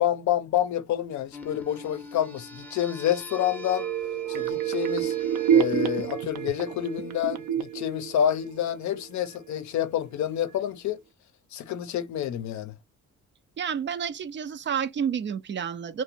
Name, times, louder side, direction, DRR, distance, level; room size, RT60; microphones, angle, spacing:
voice 1, 0.0-3.9 4.3-5.1 5.5-11.0 11.5-12.7, left 11 dB, 70° left, 0.6 m, -28 dB
sound 1, 1.3-7.3, left 3 dB, 5° left, 0.6 m, -45 dB
sound 2, 3.3-9.0 9.3-9.4, right 9 dB, 80° right, 0.6 m, -28 dB
voice 2, 13.6-16.0, right 7 dB, 40° right, 0.4 m, -30 dB
2.5 x 2.1 x 2.7 m
cardioid pair, 90°, 30 cm